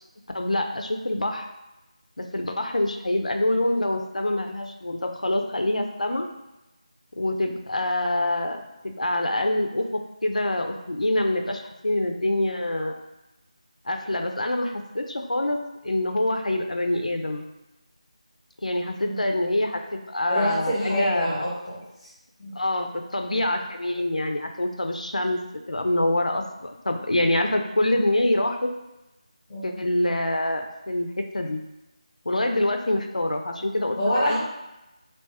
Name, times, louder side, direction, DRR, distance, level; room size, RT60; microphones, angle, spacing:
voice 1, 0.3-1.5 2.2-6.3 7.2-12.9 13.9-15.6 15.8-17.4 18.6-21.5 22.5-25.4 25.7-28.7 29.6-31.6 32.3-34.4, left 1 dB, 90° left, 4 dB, 0.4 m, -26 dB
voice 2, 19.0-19.3 20.3-21.8 22.4-22.6 29.5-29.8 34.0-34.4, equal, 20° left, -8 dB, 1.0 m, -26 dB
2.7 x 2.1 x 3.4 m, 0.96 s
figure-of-eight pair, 170°, 4 cm